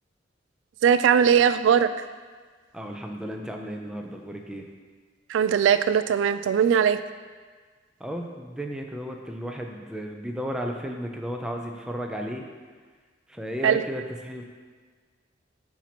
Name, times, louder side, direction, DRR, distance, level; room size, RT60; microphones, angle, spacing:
voice 1, 0.8-1.9 5.3-7.0 13.6-13.8, right 8 dB, 85° right, 13 dB, 0.3 m, -20 dB
voice 2, 2.7-4.7 8.0-12.4 13.3-14.4, equal, 5° right, 2 dB, 0.5 m, -34 dB
7.2 x 2.8 x 5.9 m, 1.5 s
head